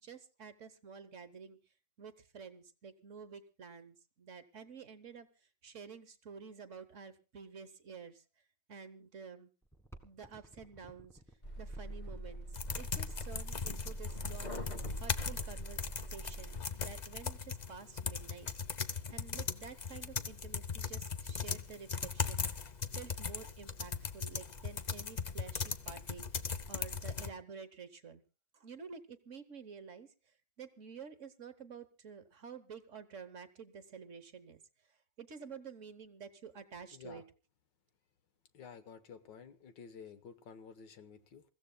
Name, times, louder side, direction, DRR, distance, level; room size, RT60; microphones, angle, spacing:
voice 1, 0.0-1.6 2.0-5.3 5.6-8.2 8.7-9.5 10.0-11.2 11.6-12.5 12.8-14.6 15.0-15.8 16.1-18.5 19.1-22.4 22.9-26.2 26.7-28.2 28.6-30.1 30.6-34.6 35.2-37.2, right 6 dB, 50° right, 11 dB, 1.2 m, -50 dB
sound 1, 9.6-15.3 16.2-16.3 16.6-16.7 16.9-17.4 17.8-18.1 18.4-19.3 19.9-20.0 20.4-20.7 21.0-21.1 21.3-21.9 22.4-23.2 23.6-23.7 24.6-24.7, right 1 dB, ahead, 1.4 m, -59 dB
sound 2, 11.4-16.6, right 1 dB, 25° left, 1.7 m, -43 dB
sound 3, 12.5-27.3, left 5 dB, 50° left, 0.5 m, -39 dB
voice 2, 36.9-37.2 38.5-41.4, left 6 dB, 90° left, 10 dB, 1.9 m, -52 dB
28.0 x 15.0 x 2.3 m, 0.31 s
omnidirectional pair, 1.9 m